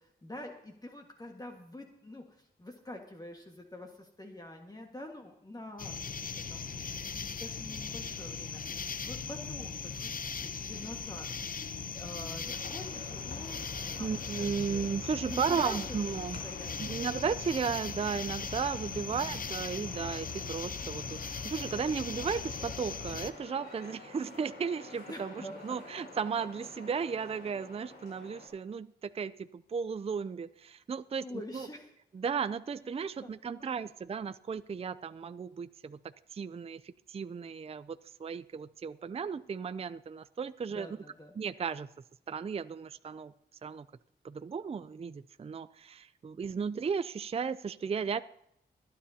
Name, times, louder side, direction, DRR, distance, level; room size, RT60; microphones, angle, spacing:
voice 1, 0.0-5.9 6.5-11.3 11.9-13.6 13.9-14.1 14.4-14.8 15.3-15.9 16.4-17.0 19.1-19.4 25.1-25.5 31.2-31.9 33.2-33.3 33.6-33.8 40.7-41.3, left 1 dB, 20° left, 1 dB, 1.6 m, -46 dB
Nightime Noises - Outside, 5.8-23.3, left 6 dB, 50° left, 0.7 m, -39 dB
sound 1, 12.4-28.5, left 2 dB, 80° left, 4.4 m, -50 dB
voice 2, 14.0-16.4 16.8-25.3 25.6-31.2 31.5-31.7 32.1-36.0 36.3-40.9 41.4-41.9 42.3-43.3 43.6-43.8 44.2-48.2, right 6 dB, 35° right, 14 dB, 0.4 m, -35 dB
23.5 x 9.8 x 2.8 m, 0.78 s
cardioid pair, 65°, 18 cm